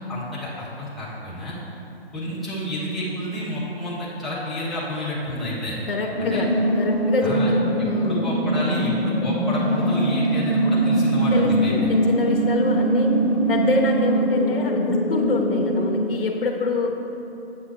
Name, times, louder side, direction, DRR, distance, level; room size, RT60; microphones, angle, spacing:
voice 1, 0.1-1.6 2.1-5.8 6.2-6.4 7.2-7.5 7.8-11.9, left 1 dB, ahead, -11 dB, 0.4 m, -30 dB
voice 2, 5.9-6.5 6.7-7.6 7.8-8.3 11.3-13.1 13.5-16.9, left 3 dB, 60° left, 1 dB, 0.7 m, -25 dB
sound 1, 6.1-15.9, right 1 dB, 20° right, 1.6 m, -22 dB
7.7 x 7.1 x 3.0 m, 2.9 s
hypercardioid pair, 170°, 32 cm